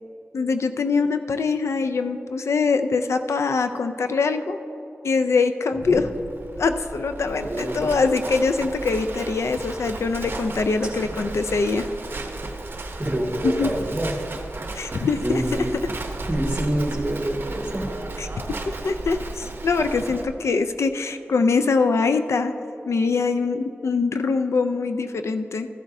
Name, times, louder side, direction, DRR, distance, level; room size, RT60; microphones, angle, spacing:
voice 1, 0.3-4.6 5.0-6.1 6.6-11.9 13.4-13.7 14.7-15.4 18.2-18.3 18.7-22.5 22.9-25.7, left 4 dB, 80° left, 8 dB, 0.4 m, -23 dB
voice 2, 5.7-6.0 7.4-7.9 13.0-14.2 15.2-15.7 16.3-17.9, right 1 dB, 20° right, 0 dB, 1.6 m, -26 dB
Livestock farm animals working animals, 5.8-20.2, right 2 dB, 50° right, 0.8 m, -34 dB
14.0 x 11.5 x 2.7 m, 2.9 s
wide cardioid pair, 90°, 5 cm